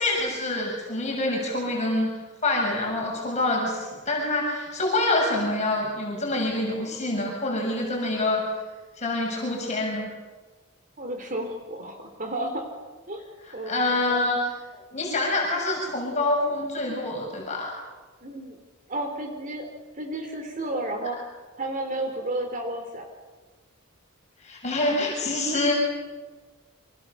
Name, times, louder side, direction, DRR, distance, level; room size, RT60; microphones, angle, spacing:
voice 1, 0.0-2.1 2.4-8.4 9.0-10.1 13.6-14.4 14.9-17.7 24.4-25.7, left 2 dB, 35° left, -1 dB, 6.9 m, -26 dB
voice 2, 11.0-12.7 13.1-13.2 13.5-14.3 18.2-18.6 18.9-19.7 19.9-21.2 21.6-23.1, right 1 dB, 40° right, 5 dB, 3.7 m, -32 dB
29.5 x 25.0 x 7.0 m, 1.3 s
head